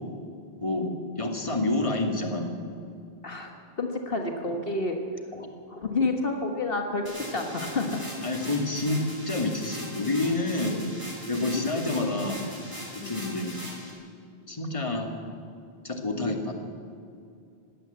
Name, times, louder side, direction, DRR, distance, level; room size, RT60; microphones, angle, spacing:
voice 1, 0.6-2.6 5.3-5.5 8.2-10.8 11.3-12.4 13.1-13.5 14.5-15.1 15.8-16.5, left 2 dB, 30° left, 3 dB, 2.2 m, -28 dB
voice 2, 3.8-5.0 5.7-8.0 11.3-11.6 13.0-13.2, left 3 dB, 65° left, 3 dB, 1.7 m, -29 dB
sound 1, 7.1-13.9, equal, 20° right, 5.9 m, -40 dB
20.5 x 17.0 x 8.0 m, 2.4 s
omnidirectional pair, 1.0 m